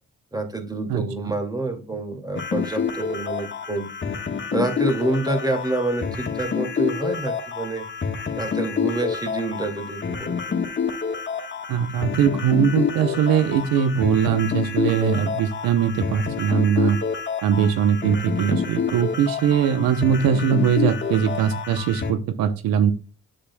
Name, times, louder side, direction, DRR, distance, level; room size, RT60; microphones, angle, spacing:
voice 1, 0.3-3.9 4.5-7.9 8.4-10.6, right 2 dB, 10° right, 4 dB, 2.3 m, -27 dB
sound 1, 2.3-22.1, left 6 dB, 35° left, 1.3 m, -28 dB
voice 2, 11.7-17.0 17.4-22.9, right 8 dB, 85° right, 10 dB, 0.9 m, -21 dB
8.6 x 7.8 x 2.2 m, 0.35 s
cardioid pair, 75°, 34 cm